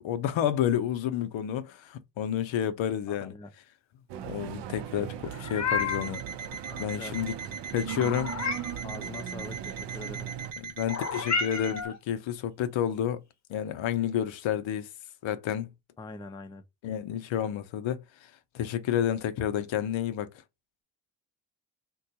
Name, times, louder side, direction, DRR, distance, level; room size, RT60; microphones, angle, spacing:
voice 1, 0.0-3.3 4.2-6.2 6.8-7.3 7.7-8.3 10.6-13.2 13.5-14.9 15.2-15.7 16.8-18.0 18.5-20.3, left 10 dB, 75° left, 0.6 m, -30 dB
voice 2, 3.1-3.5 6.7-7.2 8.8-10.3 16.0-16.6, left 3 dB, 10° left, 0.4 m, -43 dB
sound 1, 4.1-10.5, right 10 dB, 65° right, 0.6 m, -39 dB
Meow, 5.2-6.2 7.9-8.8 10.9-12.0, left 5 dB, 40° left, 0.7 m, -31 dB
Alarm, 5.8-11.9, right 5 dB, 85° right, 0.9 m, -41 dB
3.6 x 2.3 x 2.7 m
supercardioid pair, 45°, 46 cm